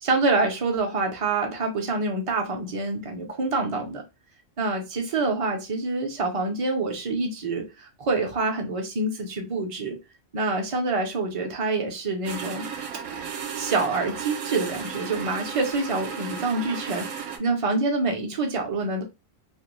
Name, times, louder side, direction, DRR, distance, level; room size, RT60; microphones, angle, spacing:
voice 1, 0.0-4.0 4.6-10.0 10.3-12.7 13.5-19.0, right 3 dB, 45° right, 0.5 m, -26 dB
sound 1, 12.2-17.4, right 6 dB, 75° right, 0.9 m, -34 dB
2.5 x 2.1 x 3.0 m
omnidirectional pair, 1.3 m